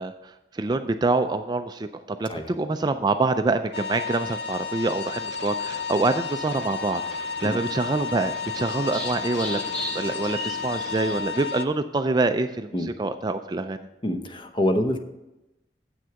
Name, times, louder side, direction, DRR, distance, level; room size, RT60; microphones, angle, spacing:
voice 1, 0.0-13.8, right 3 dB, 25° right, 8 dB, 0.3 m, -26 dB
sound 1, 3.7-11.6, left 5 dB, 70° left, 0.5 m, -32 dB
sound 2, 4.3-11.2, equal, 5° left, 1.0 m, -39 dB
voice 2, 14.0-15.0, left 1 dB, 25° left, 7 dB, 0.7 m, -25 dB
7.9 x 6.2 x 5.7 m, 0.97 s
head